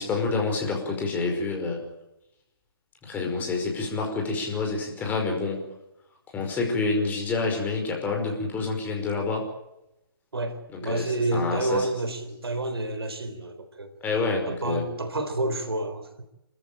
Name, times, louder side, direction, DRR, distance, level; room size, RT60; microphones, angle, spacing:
voice 1, 0.0-1.8 3.0-5.6 6.3-9.4 10.7-11.0 11.3-11.9 14.0-14.9, left 3 dB, 15° left, 1 dB, 5.4 m, -28 dB
voice 2, 10.3-13.9 14.5-16.2, right 2 dB, 85° right, 9 dB, 4.1 m, -29 dB
29.5 x 14.0 x 8.9 m, 0.89 s
hypercardioid pair, 140°, 13 cm